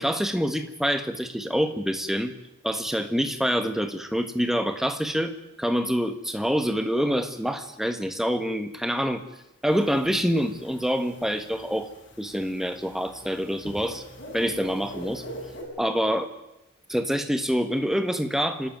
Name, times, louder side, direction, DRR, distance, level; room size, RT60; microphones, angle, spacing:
voice 1, 0.0-2.3 2.6-5.3 5.6-9.2 9.6-11.9 12.2-14.0 14.3-15.2 15.8-16.3 16.9-18.7, equal, ahead, 8 dB, 1.5 m, -26 dB
sound 1, 9.7-15.6, equal, 60° left, 6.9 m, -43 dB
27.5 x 13.0 x 9.4 m, 0.89 s
head